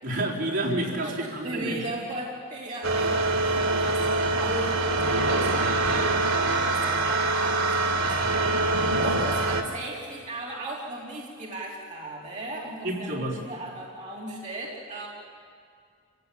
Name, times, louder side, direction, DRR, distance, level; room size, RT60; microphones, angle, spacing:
voice 1, 0.0-1.8 12.8-13.4, right 1 dB, 65° right, -4 dB, 4.4 m, -29 dB
voice 2, 1.0-6.0 6.5-15.1, right 2 dB, 40° right, -4 dB, 3.3 m, -37 dB
sound 1, 2.8-9.6, right 2 dB, 90° right, 2.2 m, -24 dB
28.5 x 16.5 x 9.0 m, 2.3 s
head